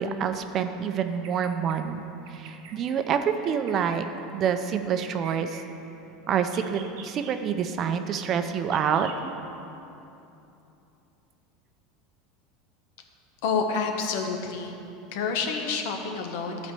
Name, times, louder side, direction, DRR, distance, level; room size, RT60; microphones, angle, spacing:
voice 1, 0.0-2.0 2.3-4.1 4.3-5.6 6.3-9.4, right 7 dB, 40° right, 8 dB, 0.5 m, -27 dB
Bird vocalization bird call bird song, 1.1-1.8 2.3-2.9 3.4-4.0 4.7-5.7 6.4-7.4 8.2-8.3 8.7-9.2, right 7 dB, 65° right, 0.9 m, -47 dB
voice 2, 13.4-14.8 15.1-16.7, left 5 dB, 75° left, 4 dB, 1.1 m, -28 dB
12.0 x 4.2 x 6.8 m, 2.9 s
supercardioid pair, 135°, 0 cm